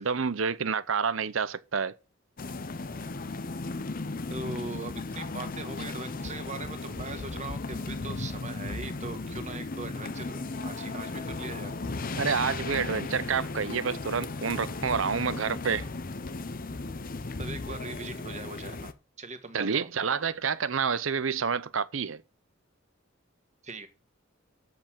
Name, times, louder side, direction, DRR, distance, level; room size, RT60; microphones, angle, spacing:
voice 1, 0.0-1.9 12.2-15.9 19.5-22.2, right 6 dB, 70° right, 0.7 m, -28 dB
sound 1, 2.4-18.9, left 3 dB, 45° left, 0.8 m, -36 dB
voice 2, 4.3-11.7 17.4-20.1 23.6-23.9, right 3 dB, 35° right, 1.7 m, -40 dB
7.9 x 6.7 x 7.5 m
head